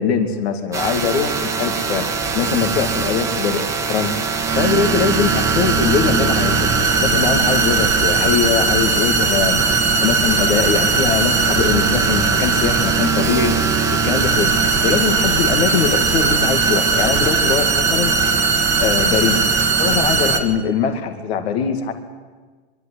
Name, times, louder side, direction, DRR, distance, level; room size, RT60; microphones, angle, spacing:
voice 1, 0.0-2.0 2.3-4.2 4.6-6.7 7.0-9.6 10.0-13.5 14.0-14.5 14.8-18.1 18.8-19.4 19.8-21.9, left 6 dB, 70° left, 7 dB, 2.3 m, -21 dB
sound 1, 0.7-20.4, right 4 dB, 10° right, 1.2 m, -19 dB
22.5 x 13.0 x 9.9 m, 1.4 s
supercardioid pair, 165°, 33 cm